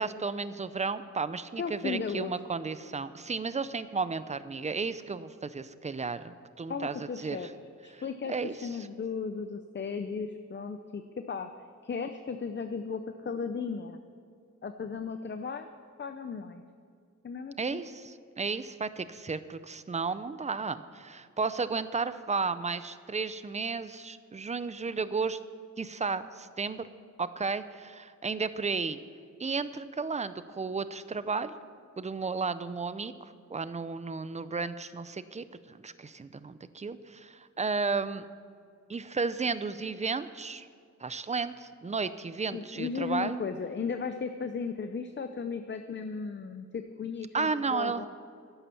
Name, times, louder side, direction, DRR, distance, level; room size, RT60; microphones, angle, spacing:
voice 1, 0.0-7.4 7.9-8.7 17.6-25.4 25.8-26.9 27.2-29.0 29.4-31.5 32.0-38.3 38.9-40.7 41.0-43.4 47.3-48.0, right 4 dB, 25° right, 13 dB, 0.5 m, -33 dB
voice 2, 1.6-2.3 6.7-7.5 7.8-11.5 11.8-14.0 14.6-15.7 16.0-16.6 17.2-17.8 42.0-42.1 42.5-48.1, left 5 dB, 35° left, 8 dB, 0.6 m, -36 dB
13.0 x 11.5 x 7.0 m, 2.3 s
wide cardioid pair, 165°, 31 cm